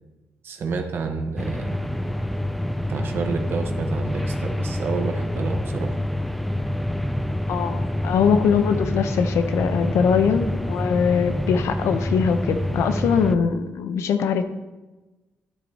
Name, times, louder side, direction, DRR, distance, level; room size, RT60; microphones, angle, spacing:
voice 1, 0.4-1.7 2.9-6.0, right 4 dB, 55° right, 4 dB, 1.1 m, -29 dB
sound 1, 1.4-13.4, left 1 dB, ahead, 0.4 m, -27 dB
voice 2, 7.5-14.4, left 6 dB, 80° left, 9 dB, 0.8 m, -22 dB
12.5 x 7.7 x 2.9 m, 1.1 s
cardioid pair, 150°, 5 cm